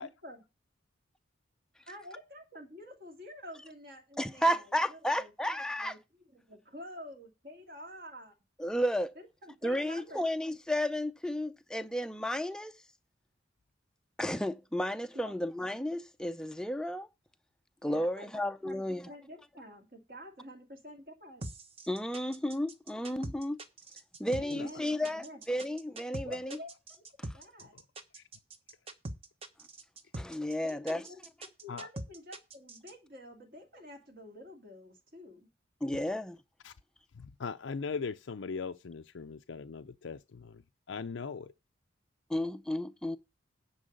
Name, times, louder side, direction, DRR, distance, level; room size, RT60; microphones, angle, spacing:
voice 1, 1.9-4.5 4.9-5.3 5.8-6.0 6.5-8.3 9.2-10.2 15.1-15.3 17.9-18.3 18.6-21.4 24.3-25.4 26.2-26.7 27.3-27.7 30.6-31.2 31.6-35.5, left 1 dB, 50° right, 2.3 m, -48 dB
voice 2, 4.2-6.0 8.6-9.2 9.6-12.9 14.2-17.1 17.8-19.1 21.9-23.6 24.2-26.6 27.2-27.4 30.1-31.1 35.8-36.4 42.3-43.2, equal, 5° left, 0.5 m, -33 dB
sound 1, 21.4-32.9, right 2 dB, 30° right, 1.0 m, -42 dB
voice 3, 37.1-40.6 40.9-41.5, left 5 dB, 85° left, 0.5 m, -39 dB
10.0 x 4.7 x 6.5 m
head